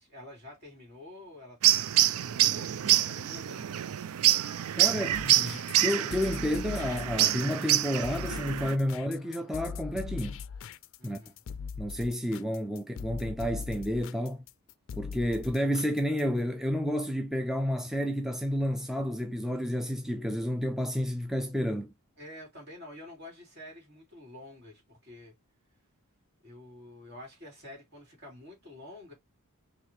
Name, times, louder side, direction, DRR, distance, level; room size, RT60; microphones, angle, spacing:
voice 1, 0.0-3.7 11.0-11.4 22.2-25.3 26.4-29.1, left 1 dB, 50° right, 3.0 m, -48 dB
sound 1, 1.6-8.8, right 12 dB, 70° right, 0.4 m, -26 dB
voice 2, 4.7-10.4 11.0-11.2 11.8-14.4 15.0-21.9, equal, ahead, 0.4 m, -30 dB
sound 2, 5.1-16.4, left 6 dB, 60° left, 0.4 m, -40 dB
4.7 x 3.0 x 3.0 m
head